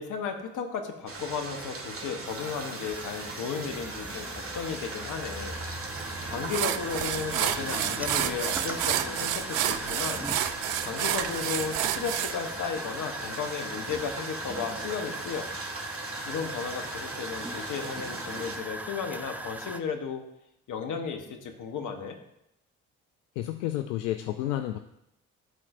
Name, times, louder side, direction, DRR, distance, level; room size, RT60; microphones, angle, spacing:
voice 1, 0.0-5.6 6.3-10.3 10.8-15.5 16.2-20.2 20.7-22.2, left 6 dB, 55° left, 5 dB, 1.2 m, -34 dB
sound 1, 1.1-18.6, right 3 dB, 35° right, 1.8 m, -39 dB
sound 2, 2.2-19.8, right 1 dB, 5° right, 0.6 m, -39 dB
sound 3, 6.0-6.1 6.5-12.3, right 12 dB, 70° right, 0.5 m, -29 dB
voice 2, 23.4-24.8, left 13 dB, 80° left, 7 dB, 0.5 m, -30 dB
12.5 x 4.3 x 2.6 m, 0.81 s
hypercardioid pair, 50°, 37 cm